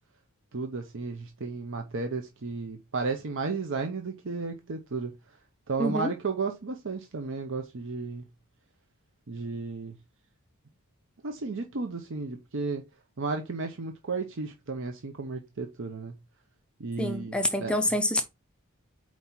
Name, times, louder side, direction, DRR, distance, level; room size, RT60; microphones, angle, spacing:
voice 1, 0.5-5.1 5.7-8.2 9.3-10.0 11.2-12.8 13.2-16.1 16.8-17.7, right 4 dB, 55° right, 0.7 m, -33 dB
voice 2, 5.8-6.1 17.0-18.2, left 1 dB, 5° left, 0.5 m, -27 dB
4.7 x 4.2 x 5.7 m
head